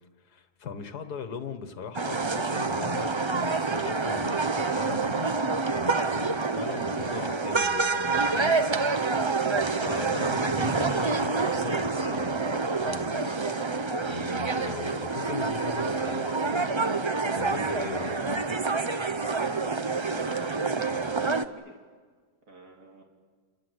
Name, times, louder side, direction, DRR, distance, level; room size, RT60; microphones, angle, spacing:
voice 1, 0.2-5.3 5.7-8.9 9.7-13.3 14.1-16.7 17.4-18.2, left 6 dB, 80° left, 9 dB, 2.0 m, -39 dB
sound 1, 1.9-21.4, right 4 dB, 25° right, 0.6 m, -27 dB
voice 2, 20.0-21.8 22.5-23.0, right 2 dB, 80° right, 1 dB, 3.6 m, -47 dB
29.0 x 24.0 x 8.0 m, 1.5 s
omnidirectional pair, 1.7 m